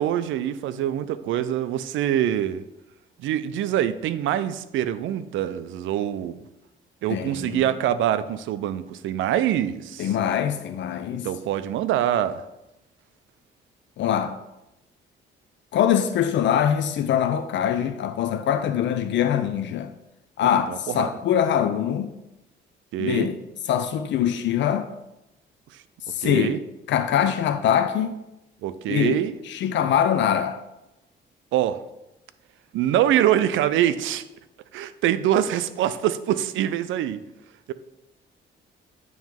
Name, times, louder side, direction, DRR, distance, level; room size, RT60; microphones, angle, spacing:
voice 1, 0.0-2.6 3.2-6.4 7.0-10.1 11.1-12.4 20.7-21.1 22.9-23.3 26.2-26.6 28.6-29.3 31.5-31.8 32.7-34.2 34.7-37.2, right 11 dB, 80° right, 0.4 m, -24 dB
voice 2, 7.1-7.7 10.0-11.3 14.0-14.4 15.7-19.9 20.4-22.1 23.0-23.4 23.6-24.9 26.1-26.6 26.9-28.2 28.9-29.2 29.4-30.6, left 9 dB, 70° left, 0.4 m, -23 dB
9.1 x 3.1 x 3.6 m
cardioid pair, 90°, 20 cm